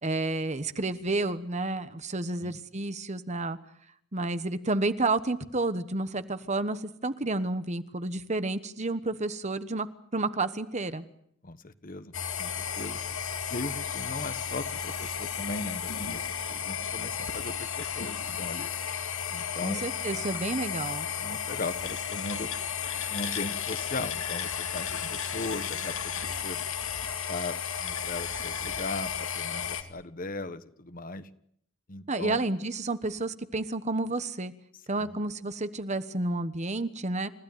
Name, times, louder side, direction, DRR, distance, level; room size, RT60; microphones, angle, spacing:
voice 1, 0.0-3.6 4.1-9.9 10.1-11.0 19.6-21.1 32.1-34.5 34.9-37.3, right 2 dB, 35° right, 12 dB, 1.2 m, -30 dB
voice 2, 11.4-12.1 12.4-13.0 13.5-18.7 19.3-19.8 20.1-20.2 21.2-22.5 23.1-26.6 27.3-31.3 31.9-32.4 35.0-35.2, left 2 dB, 40° left, 11 dB, 1.5 m, -38 dB
sound 1, 12.1-29.8, left 7 dB, 75° left, 2.4 m, -33 dB
30.0 x 15.5 x 9.4 m, 0.69 s
head